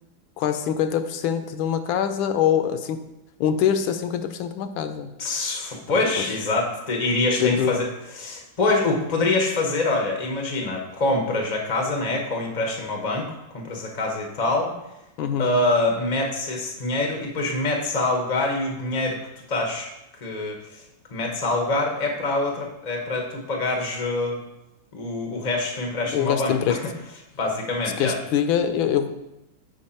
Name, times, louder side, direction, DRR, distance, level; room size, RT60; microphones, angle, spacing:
voice 1, 0.4-3.0 3.4-5.1 7.4-7.7 15.2-15.5 26.1-26.8 28.0-29.2, left 8 dB, 80° left, 9 dB, 1.3 m, -23 dB
voice 2, 5.2-7.9 8.1-14.7 15.4-19.2 19.5-19.9 20.2-20.8 21.1-24.4 24.9-26.8 27.3-28.2, left 2 dB, 55° left, 1 dB, 0.4 m, -25 dB
6.4 x 4.7 x 4.3 m, 0.92 s
omnidirectional pair, 2.2 m